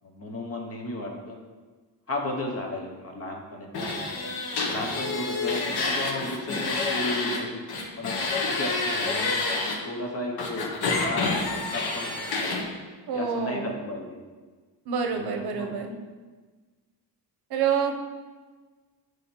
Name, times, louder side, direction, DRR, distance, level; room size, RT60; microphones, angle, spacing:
voice 1, 0.0-1.4 2.1-4.3 4.7-7.6 8.0-9.4 9.8-12.7 13.1-14.2 15.2-15.3 15.5-15.7, left 1 dB, 35° left, 1 dB, 0.8 m, -34 dB
sound 1, 3.7-7.4 7.7-9.7 10.4-12.6, left 3 dB, 65° left, 1.0 m, -28 dB
voice 2, 13.1-13.7 14.9-16.0 17.5-17.9, right 6 dB, 60° right, 4 dB, 0.7 m, -27 dB
8.1 x 3.2 x 4.3 m, 1.4 s
cardioid pair, 165°, 42 cm